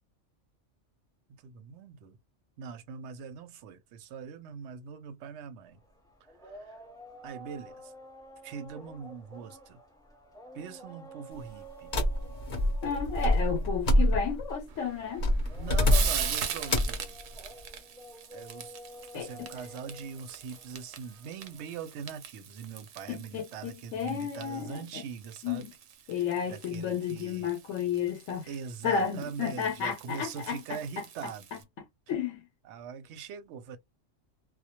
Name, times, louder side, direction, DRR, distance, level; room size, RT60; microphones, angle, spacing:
voice 1, 1.4-2.2 2.6-5.8 6.5-6.8 7.2-7.9 8.4-9.8 10.5-11.9 15.6-17.4 18.3-18.7 19.1-25.7 26.2-27.5 28.5-31.6 32.6-33.8, right 6 dB, 70° right, 0.8 m, -42 dB
sound 1, 5.7-22.0, right 1 dB, 5° left, 0.7 m, -50 dB
sound 2, 11.9-14.5 15.2-16.3 16.7-17.0, left 1 dB, 45° left, 0.7 m, -26 dB
voice 2, 12.8-15.2 19.1-19.5 23.1-25.0 25.4-25.7 26.1-28.5 28.8-31.0 32.1-32.4, left 7 dB, 80° left, 0.9 m, -32 dB
Frying (food), 14.7-31.6, right 8 dB, 90° right, 1.0 m, -42 dB
2.2 x 2.1 x 2.8 m
omnidirectional pair, 1.3 m